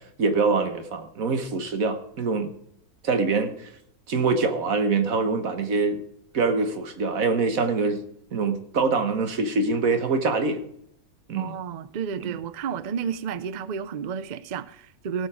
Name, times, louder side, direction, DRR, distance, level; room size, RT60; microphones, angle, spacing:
voice 1, 0.2-2.5 3.0-3.7 4.1-6.0 6.3-8.0 8.3-10.6 11.3-11.5 12.2-12.3, right 4 dB, 60° right, 1.7 m, -24 dB
voice 2, 11.4-15.3, right 7 dB, 80° right, 0.4 m, -31 dB
17.5 x 6.6 x 5.0 m
omnidirectional pair, 1.6 m